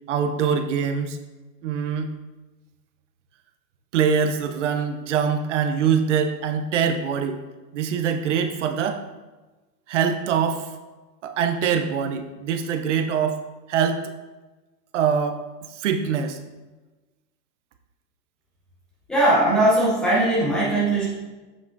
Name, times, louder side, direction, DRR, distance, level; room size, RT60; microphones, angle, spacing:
voice 1, 0.1-1.2 1.6-2.1 3.9-7.4 7.7-9.0 9.9-10.7 11.2-13.4 13.7-14.1 14.9-15.4 15.7-16.4, right 7 dB, 45° right, 7 dB, 0.6 m, -23 dB
voice 2, 19.1-21.1, right 1 dB, ahead, -7 dB, 0.5 m, -19 dB
7.5 x 6.0 x 2.6 m, 1.2 s
supercardioid pair, 160°, 50 cm